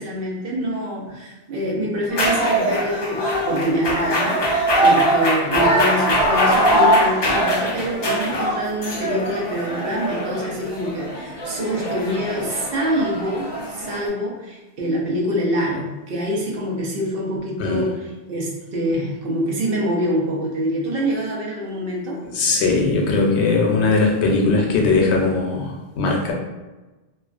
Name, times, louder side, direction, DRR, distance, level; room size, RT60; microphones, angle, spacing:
voice 1, 0.0-4.4 4.8-22.2, equal, 65° right, -3 dB, 0.8 m, -25 dB
sound 1, 2.1-14.1, equal, 45° left, 0.3 m, -21 dB
voice 2, 22.3-26.3, left 3 dB, 85° left, 0 dB, 0.8 m, -19 dB
2.4 x 2.2 x 2.4 m, 1.1 s
omnidirectional pair, 1.1 m